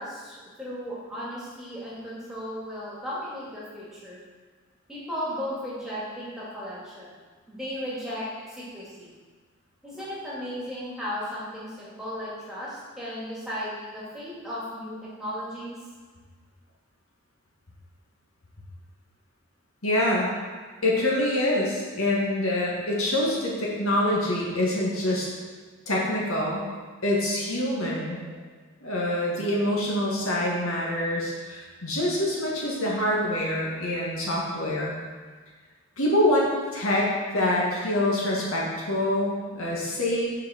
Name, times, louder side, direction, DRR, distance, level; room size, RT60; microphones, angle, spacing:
voice 1, 0.0-4.2 4.9-7.1 7.5-9.1 9.8-15.8 28.1-28.2, equal, ahead, -8 dB, 2.0 m, -35 dB
voice 2, 19.8-20.3 20.8-25.3 25.9-26.7 27.0-28.2 28.8-35.0 36.0-40.3, left 1 dB, 75° left, -4 dB, 1.8 m, -25 dB
6.3 x 4.9 x 6.4 m, 1.5 s
head